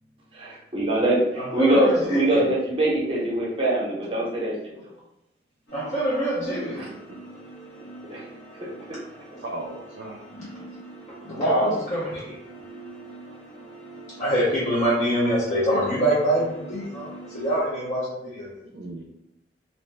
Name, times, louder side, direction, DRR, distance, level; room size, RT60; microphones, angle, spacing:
voice 1, 0.3-4.5 6.8-6.9 8.1-8.3, right 1 dB, 30° right, -4 dB, 0.7 m, -23 dB
voice 2, 1.4-2.4 5.7-6.9 10.4-10.6 11.2-12.3 14.2-18.5, right 1 dB, 40° left, -7 dB, 0.6 m, -25 dB
sound 1, 5.7-17.6, right 2 dB, 75° left, 1.3 m, -44 dB
voice 3, 6.7-7.2 8.1-8.3 9.4-10.3 18.7-19.0, right 1 dB, 90° right, 0 dB, 0.4 m, -37 dB
2.6 x 2.1 x 3.2 m, 0.85 s
head